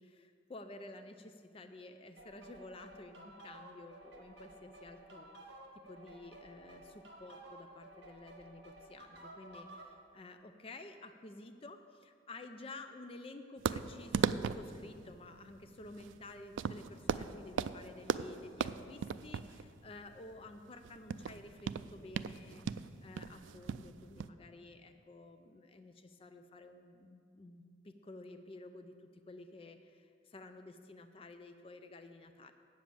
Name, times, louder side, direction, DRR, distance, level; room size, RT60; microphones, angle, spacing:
voice 1, 0.0-5.6 5.9-32.5, left 2 dB, 30° left, 8 dB, 0.4 m, -52 dB
sound 1, 2.2-9.9, right 1 dB, 65° right, 1.5 m, -54 dB
sound 2, 13.7-24.3, right 7 dB, 90° right, 0.3 m, -38 dB
8.4 x 7.0 x 7.5 m, 2.3 s
head